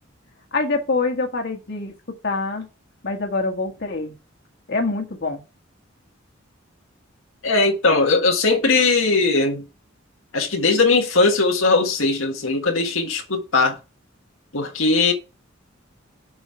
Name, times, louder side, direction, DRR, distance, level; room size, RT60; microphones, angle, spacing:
voice 1, 0.5-1.9 2.2-2.7 3.0-4.1 4.7-5.4, left 3 dB, 55° left, 1.6 m, -25 dB
voice 2, 7.4-9.7 10.3-13.8 14.5-15.1, left 3 dB, 85° left, 1.8 m, -19 dB
7.2 x 5.5 x 4.6 m
head